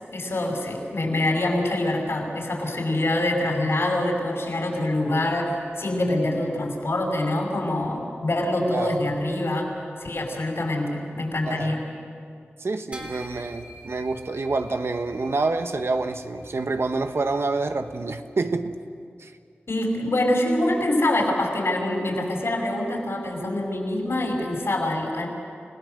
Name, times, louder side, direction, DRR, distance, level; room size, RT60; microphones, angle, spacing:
voice 1, 0.1-9.7 10.0-11.8 19.7-25.3, left 1 dB, 70° left, 1 dB, 5.3 m, -25 dB
voice 2, 12.6-18.8 19.2-19.3, right 3 dB, 65° right, 8 dB, 1.2 m, -27 dB
sound 1, 12.9-18.5, equal, 30° right, 3.5 m, -46 dB
29.5 x 17.5 x 6.7 m, 2.3 s
wide cardioid pair, 60°, 4 cm